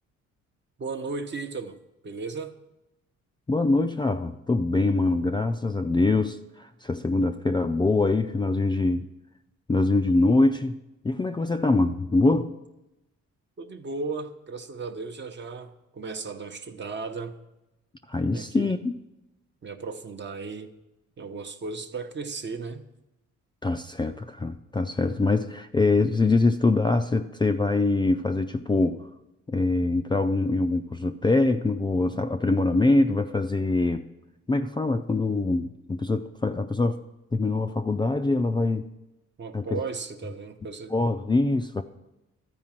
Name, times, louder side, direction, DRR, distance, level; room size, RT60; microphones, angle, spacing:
voice 1, 0.8-1.8 2.0-2.6 13.6-17.3 18.3-18.7 19.6-20.7 21.2-22.8 39.4-40.9, right 4 dB, 35° right, 0.9 m, -35 dB
voice 2, 3.5-9.1 9.7-10.7 11.0-12.5 18.1-19.0 23.6-29.0 29.5-34.1 34.5-37.0 37.3-38.9 39.5-39.8 40.9-41.8, left 2 dB, 15° left, 0.4 m, -24 dB
13.0 x 4.8 x 7.4 m
cardioid pair, 90°, 30 cm